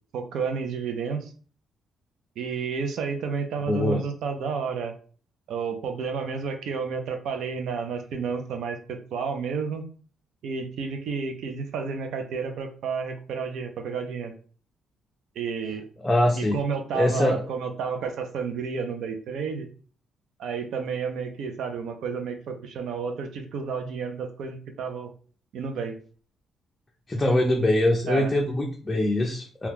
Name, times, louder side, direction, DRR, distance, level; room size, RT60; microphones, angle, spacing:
voice 1, 0.1-1.3 2.4-4.9 5.5-9.9 10.4-14.3 15.4-15.8 16.4-19.7 20.4-25.1 25.5-26.0 28.1-28.3, right 5 dB, 75° right, 6 dB, 0.5 m, -31 dB
voice 2, 3.7-4.0 16.0-16.6 16.9-17.4 27.1-29.7, left 1 dB, 15° left, 1 dB, 0.4 m, -23 dB
2.9 x 2.2 x 3.5 m, 0.43 s
cardioid pair, 150°, 0 cm